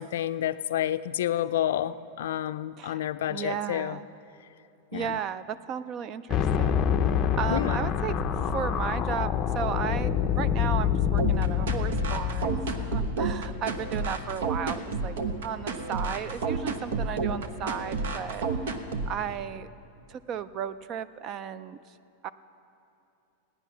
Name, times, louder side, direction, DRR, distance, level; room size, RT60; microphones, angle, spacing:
voice 1, 0.0-4.0 4.9-5.2 7.5-7.8, left 11 dB, 75° left, 13 dB, 0.4 m, -29 dB
voice 2, 2.8-4.1 4.9-6.9 7.4-8.2 8.5-15.2 15.4-18.5 19.1-19.7 20.1-21.8 22.2-22.3, right 8 dB, 30° right, 15 dB, 0.4 m, -34 dB
sound 1, 6.3-14.4, left 8 dB, 25° left, 0.5 m, -27 dB
sound 2, 11.2-19.2, right 4 dB, 75° right, 1.0 m, -30 dB
17.0 x 10.0 x 5.9 m, 2.8 s
supercardioid pair, 160°, 0 cm